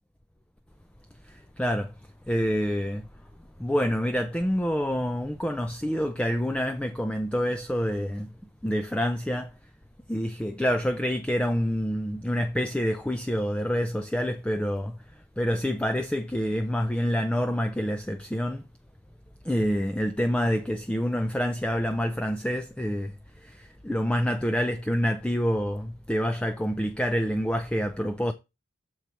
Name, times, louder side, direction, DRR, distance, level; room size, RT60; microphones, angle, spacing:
voice 1, 1.2-1.9 2.3-3.1 3.6-8.3 8.6-9.5 10.1-15.0 15.4-18.6 19.4-28.3, equal, 5° left, 0.4 m, -27 dB
6.9 x 4.6 x 5.9 m
head